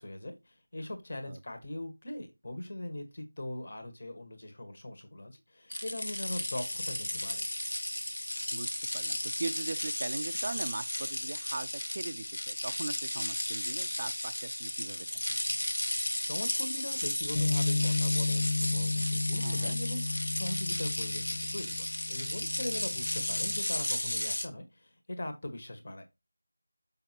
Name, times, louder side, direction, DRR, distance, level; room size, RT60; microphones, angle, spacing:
voice 1, 0.0-7.4 16.3-26.0, left 1 dB, 45° left, 1.5 m, -41 dB
sound 1, 5.7-24.5, left 1 dB, 70° left, 1.4 m, -34 dB
voice 2, 8.5-15.4 19.4-19.8, right 3 dB, 40° right, 0.4 m, -40 dB
Bass guitar, 17.4-23.6, left 3 dB, 30° left, 0.4 m, -33 dB
6.7 x 5.5 x 2.9 m
figure-of-eight pair, 170°, 0 cm